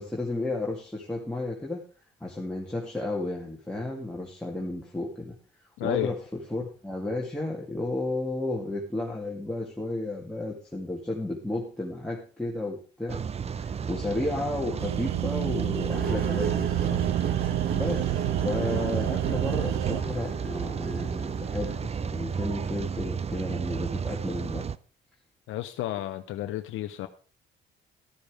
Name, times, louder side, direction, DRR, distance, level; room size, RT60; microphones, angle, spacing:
voice 1, 0.0-1.8 2.2-5.3 5.8-13.2 13.5-17.0 17.4-24.7, left 2 dB, 5° left, 2.3 m, -33 dB
voice 2, 5.8-6.1 25.5-27.1, left 14 dB, 85° left, 0.7 m, -31 dB
Rain, 13.1-24.8, right 6 dB, 30° right, 0.5 m, -33 dB
sound 1, 14.8-20.0, right 15 dB, 85° right, 0.4 m, -29 dB
sound 2, 15.9-21.8, right 6 dB, 50° right, 1.8 m, -34 dB
13.5 x 7.2 x 4.9 m
cardioid pair, 90°, 20 cm